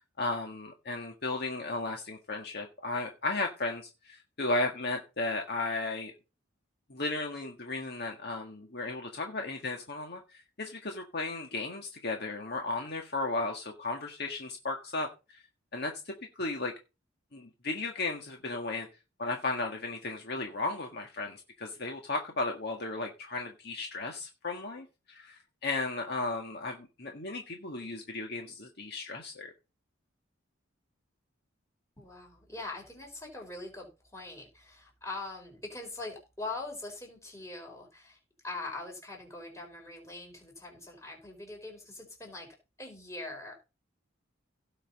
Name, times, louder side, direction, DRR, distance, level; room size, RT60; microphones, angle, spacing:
voice 1, 0.2-6.1 6.9-15.4 15.7-16.7 17.3-18.9 19.2-29.5, left 2 dB, 50° left, 1.7 m, -35 dB
voice 2, 32.0-42.5 42.8-43.6, left 2 dB, 15° left, 4.8 m, -42 dB
17.0 x 5.8 x 4.2 m
head